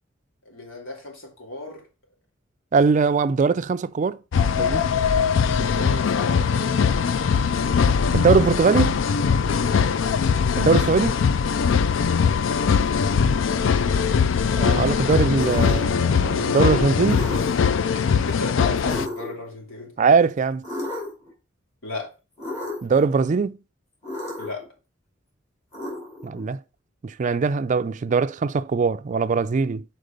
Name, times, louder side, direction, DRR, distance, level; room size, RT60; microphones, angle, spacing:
voice 1, 0.5-1.8 4.6-4.9 5.6-6.9 9.7-9.9 12.1-12.4 12.8-12.9 17.9-19.9 21.8-22.1 24.4-24.6, left 3 dB, 85° left, 2.6 m, -35 dB
voice 2, 2.7-4.2 4.6-4.9 8.1-9.0 10.6-11.2 14.5-17.3 20.0-20.6 22.8-23.6 26.2-26.6 27.0-29.8, right 5 dB, 40° right, 0.3 m, -21 dB
sound 1, 4.3-19.1, left 6 dB, 70° left, 0.4 m, -21 dB
sound 2, 15.3-15.9 17.1-17.7 18.9-19.5 20.6-21.3 22.4-23.0 24.0-24.7 25.7-26.4, left 1 dB, 35° left, 3.2 m, -33 dB
6.5 x 4.6 x 5.1 m
head